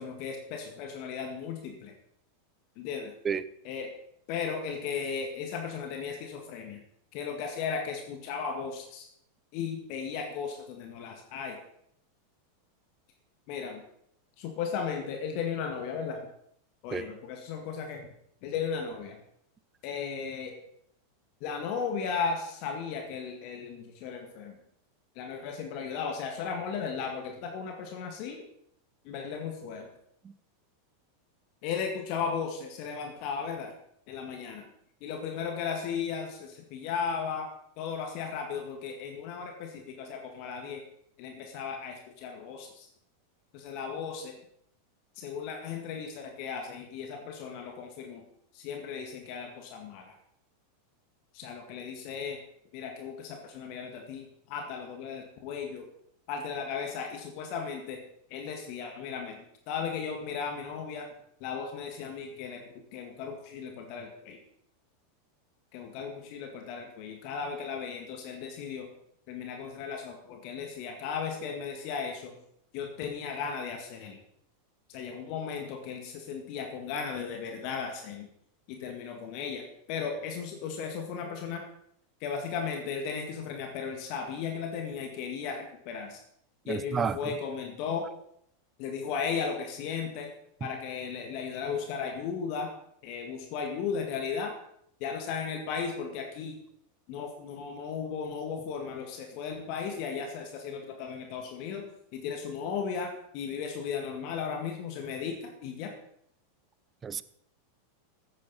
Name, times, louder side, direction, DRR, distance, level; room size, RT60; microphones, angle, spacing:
voice 1, 0.0-1.9 2.8-3.1 3.6-3.9 4.3-6.8 7.1-9.1 9.5-11.6 13.5-13.8 14.4-16.3 16.8-18.1 18.4-19.2 19.8-20.5 21.4-24.6 25.2-28.4 29.0-29.9 31.6-33.7 34.1-34.7 35.0-37.5 37.8-40.8 41.2-42.9 43.5-44.3 45.2-48.2 48.5-50.1 51.3-52.4 52.7-55.9 56.3-58.0 58.3-59.4 59.7-61.1 61.4-62.6 62.9-64.4 65.7-68.9 69.3-72.4 72.7-74.2 74.9-78.3 78.7-81.6 82.2-86.2 86.7-88.1 88.8-90.3 90.6-92.7 93.0-94.5 95.0-96.6 97.1-101.9 102.1-105.9, left 6 dB, 50° left, 4 dB, 1.9 m, -36 dB
voice 2, 86.7-87.4 107.0-107.2, right 6 dB, 25° right, 16 dB, 0.6 m, -30 dB
15.0 x 9.3 x 4.2 m, 0.70 s
figure-of-eight pair, 90°, 0 cm